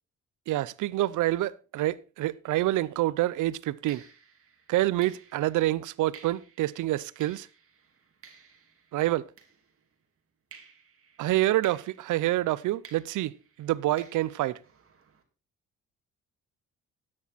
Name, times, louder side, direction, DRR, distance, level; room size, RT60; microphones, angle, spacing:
voice 1, 0.5-4.0 4.7-7.5 8.9-9.3 11.2-14.6, right 15 dB, 80° right, 0.7 m, -27 dB
sound 1, 2.7-2.9 3.9-10.0 10.5-15.2, right 6 dB, 45° right, 2.8 m, -55 dB
13.0 x 9.8 x 4.1 m
cardioid pair, 90°, 30 cm